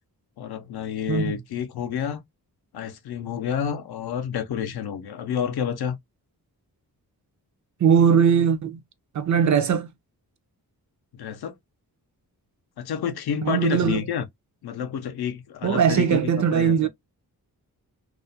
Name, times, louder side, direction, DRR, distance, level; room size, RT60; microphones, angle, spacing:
voice 1, 0.4-2.2 2.7-6.0 11.1-11.5 12.8-14.2 14.6-16.9, left 8 dB, 75° left, 0.6 m, -29 dB
voice 2, 7.8-8.8 9.1-9.9 13.4-14.0 15.6-16.9, right 7 dB, 50° right, 0.4 m, -20 dB
2.4 x 2.0 x 2.5 m
cardioid pair, 75°, 38 cm